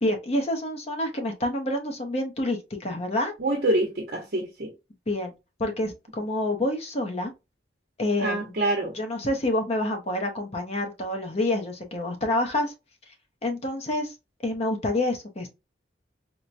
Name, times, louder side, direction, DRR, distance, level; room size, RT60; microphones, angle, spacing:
voice 1, 0.0-3.3 5.1-5.3 5.6-7.3 8.0-8.5 8.9-12.7 13.4-14.1 14.4-15.5, left 1 dB, 35° left, 0.7 m, -27 dB
voice 2, 3.4-4.7 8.2-8.9, right 1 dB, 55° right, 0.8 m, -26 dB
4.5 x 2.1 x 2.5 m
head